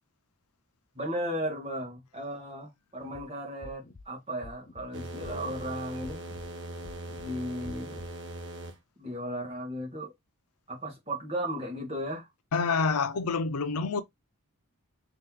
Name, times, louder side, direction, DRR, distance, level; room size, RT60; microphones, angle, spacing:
voice 1, 0.9-6.2 7.2-8.0 9.0-10.1 10.7-12.3, equal, 25° right, 1.5 m, -35 dB
sound 1, 3.0-3.2 3.6-4.0 4.4-4.8 5.2-5.7 6.0-6.5 6.8-7.3 7.6-8.1, left 3 dB, 35° left, 0.5 m, -48 dB
sound 2, 4.9-8.8, right 1 dB, 55° right, 0.7 m, -40 dB
voice 2, 12.5-14.0, left 4 dB, 80° left, 0.6 m, -27 dB
3.3 x 2.9 x 3.7 m
head